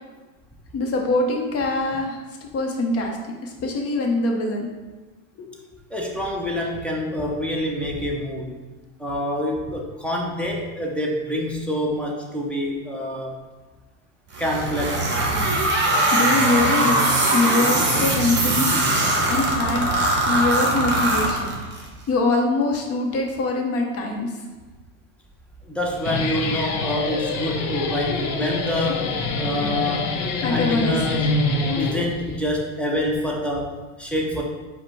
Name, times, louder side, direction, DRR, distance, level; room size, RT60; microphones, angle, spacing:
voice 1, 0.7-2.2 2.5-3.2 3.4-4.7 5.5-5.6 16.1-17.1 17.3-18.7 19.3-19.9 20.2-21.5 22.1-24.3 30.4-31.0, left 2 dB, 30° left, 1 dB, 0.8 m, -23 dB
voice 2, 5.9-8.7 9.0-13.5 14.4-15.1 25.7-29.1 29.4-30.1 30.5-31.4 31.8-34.4, left 1 dB, 5° left, -2 dB, 0.5 m, -27 dB
sound 1, 14.3-21.9, right 1 dB, 25° right, 1.0 m, -21 dB
Guitar, 25.8-32.4, left 3 dB, 80° left, 0.7 m, -25 dB
4.8 x 2.2 x 4.5 m, 1.3 s
supercardioid pair, 110°, 45 cm